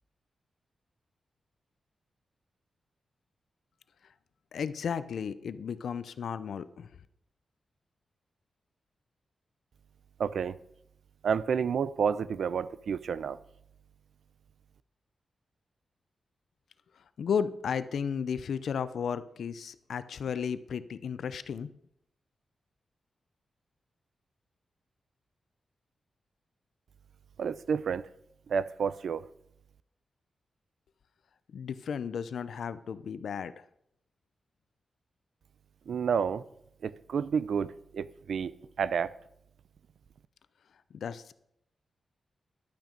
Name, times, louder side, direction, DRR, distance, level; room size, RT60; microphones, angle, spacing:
voice 1, 4.5-6.9 17.2-21.7 31.5-33.6 40.9-41.3, left 7 dB, 75° left, 0.6 m, -34 dB
voice 2, 10.2-10.6 11.2-13.4 27.4-28.1 28.5-29.2 35.9-36.4 36.8-38.5 38.8-39.1, right 6 dB, 70° right, 0.5 m, -30 dB
11.5 x 9.0 x 5.2 m
wide cardioid pair, 165°, 0 cm